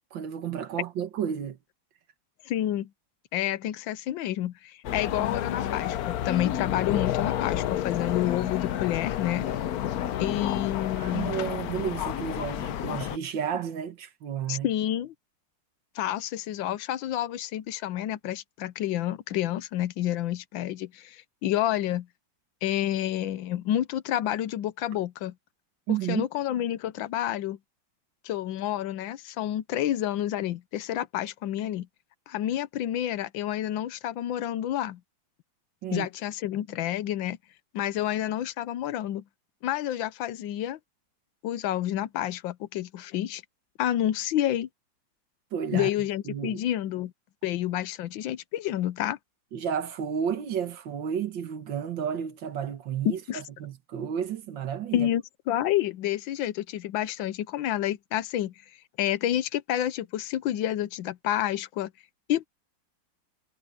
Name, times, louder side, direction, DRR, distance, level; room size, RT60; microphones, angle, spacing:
voice 1, 0.1-1.6 11.0-14.7 25.9-26.3 35.8-36.1 45.5-45.9 46.3-46.6 49.5-55.1, right 8 dB, 75° right, 2.0 m, -32 dB
voice 2, 2.4-2.9 3.3-9.5 10.2-11.3 14.5-15.1 15.9-22.1 22.6-25.3 26.1-27.6 28.2-31.9 32.3-35.0 35.9-37.4 37.7-39.2 39.6-40.8 41.4-43.4 43.8-44.7 45.7-47.1 47.4-49.2 53.0-53.4 54.9-58.5 59.0-61.9 62.3-62.5, left 12 dB, 85° left, 1.5 m, -29 dB
sound 1, 4.8-13.2, left 11 dB, 60° left, 1.0 m, -30 dB
omnidirectional pair, 2.1 m